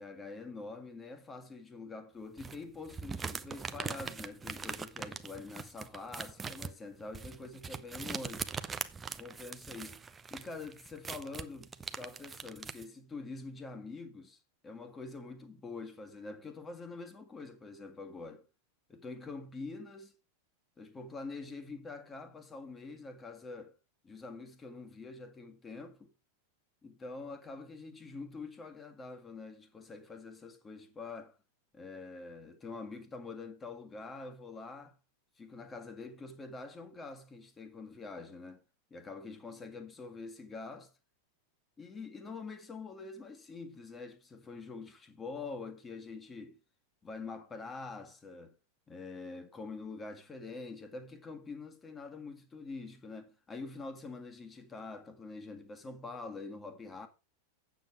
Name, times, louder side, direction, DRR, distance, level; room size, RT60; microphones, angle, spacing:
voice 1, 0.0-8.5 9.2-10.0 10.3-18.4 18.9-20.1 20.8-23.7 24.0-26.1 26.8-31.4 31.7-35.0 35.4-38.6 38.9-40.9 41.8-46.5 47.0-48.6 48.9-57.1, left 3 dB, 15° left, 1.8 m, -45 dB
sound 1, 2.4-12.8, right 5 dB, 15° right, 0.8 m, -42 dB
9.0 x 7.5 x 4.7 m
figure-of-eight pair, 90°, 0 cm